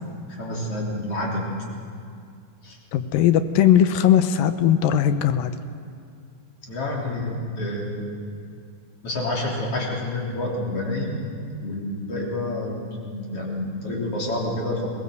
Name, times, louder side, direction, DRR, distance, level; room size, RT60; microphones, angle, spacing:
voice 1, 0.3-1.4 2.6-2.8 6.7-8.1 9.0-11.2 11.6-14.9, left 1 dB, 40° left, -2 dB, 4.2 m, -28 dB
voice 2, 2.9-5.5, left 10 dB, 80° left, 10 dB, 2.4 m, -19 dB
22.0 x 17.5 x 7.9 m, 2.3 s
omnidirectional pair, 4.0 m